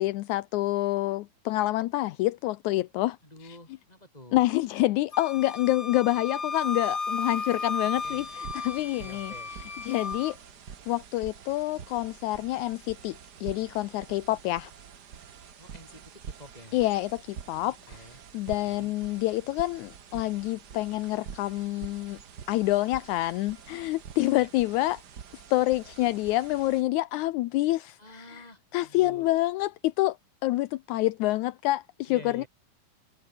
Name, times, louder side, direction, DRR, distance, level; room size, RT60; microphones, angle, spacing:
voice 1, 0.0-3.2 4.3-9.3 9.8-10.4 10.9-14.7 16.7-18.0 18.3-22.2 22.5-25.0 25.3-28.5 28.7-30.2 30.4-32.4, left 17 dB, 80° left, 1.8 m, -27 dB
voice 2, 3.2-4.5 7.7-8.2 9.0-9.5 15.6-16.9 17.9-18.2 18.6-18.9 24.3-24.5 28.0-29.3 32.1-32.5, left 1 dB, 10° left, 7.7 m, -49 dB
Wind instrument woodwind instrument, 5.1-10.3, left 4 dB, 25° left, 1.6 m, -34 dB
sound 1, 8.0-26.8, right 7 dB, 55° right, 1.1 m, -47 dB
omnidirectional pair, 4.0 m